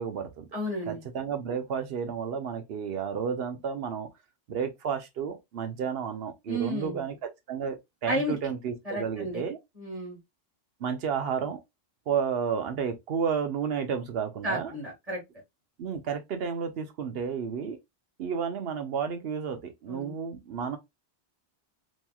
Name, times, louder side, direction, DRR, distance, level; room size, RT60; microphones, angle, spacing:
voice 1, 0.0-0.4 0.9-4.1 4.5-9.6 10.8-11.6 12.1-14.7 15.8-17.8 18.2-20.8, right 7 dB, 60° right, 0.8 m, -32 dB
voice 2, 0.5-1.0 6.5-7.0 8.1-8.4 8.8-9.4 9.8-10.2 14.4-15.2 19.9-20.1, equal, 30° right, 1.5 m, -32 dB
3.0 x 2.7 x 2.2 m
omnidirectional pair, 1.2 m